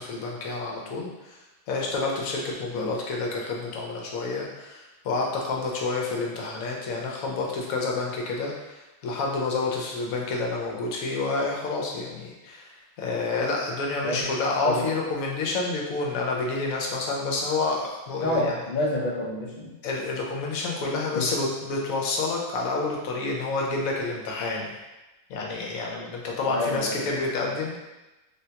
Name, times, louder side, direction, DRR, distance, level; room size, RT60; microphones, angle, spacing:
voice 1, 0.0-1.4 1.7-18.5 19.8-24.7 25.3-27.8, left 3 dB, 75° left, -1 dB, 1.0 m, -29 dB
voice 2, 18.2-19.7 21.1-21.3 26.4-27.5, left 1 dB, 55° left, -3 dB, 0.5 m, -28 dB
3.6 x 2.2 x 2.8 m, 1.0 s
omnidirectional pair, 1.5 m